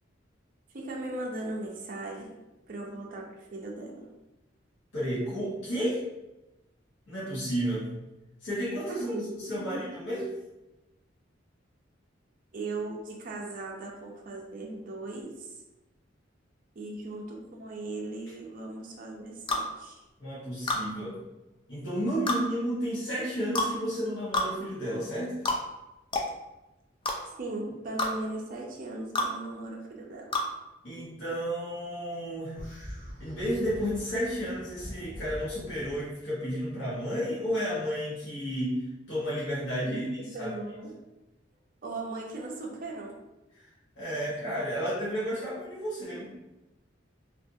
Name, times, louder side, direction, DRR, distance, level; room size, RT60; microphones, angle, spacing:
voice 1, 0.7-2.4 2.7-4.1 8.9-9.7 12.5-15.6 16.8-20.0 27.2-30.4 39.8-41.0 41.8-43.2, right 2 dB, 45° right, 0 dB, 0.5 m, -38 dB
voice 2, 4.9-6.1 7.1-8.0 8.4-10.3 20.2-21.2 21.7-25.4 30.8-32.5 33.2-38.8 39.1-40.1 40.4-40.5 43.6-43.7 44.0-46.3, equal, 70° left, -9 dB, 1.0 m, -32 dB
sound 1, 19.5-19.7 20.7-20.8 22.3-22.4 23.6-23.7 24.3-24.5 25.5-25.6 26.1-26.3 27.1-27.2 28.0-28.1 29.2-29.3 30.3-30.5, left 2 dB, 25° left, 0.3 m, -27 dB
sound 2, 32.5-36.0, equal, 40° left, 0.9 m, -43 dB
2.6 x 2.5 x 2.6 m, 0.98 s
head